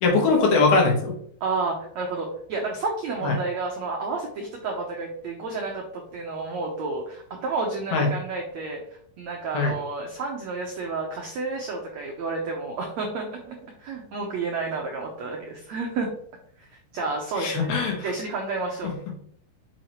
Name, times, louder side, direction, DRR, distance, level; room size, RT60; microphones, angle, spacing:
voice 1, 0.0-1.1 3.2-3.4 7.9-8.1 9.5-9.7 17.4-18.1, left 3 dB, 75° left, 1 dB, 3.5 m, -21 dB
voice 2, 1.4-8.8 9.2-16.1 16.9-17.7 18.0-19.1, right 3 dB, 80° right, 0 dB, 1.5 m, -30 dB
6.4 x 6.1 x 3.0 m, 0.66 s
omnidirectional pair, 4.5 m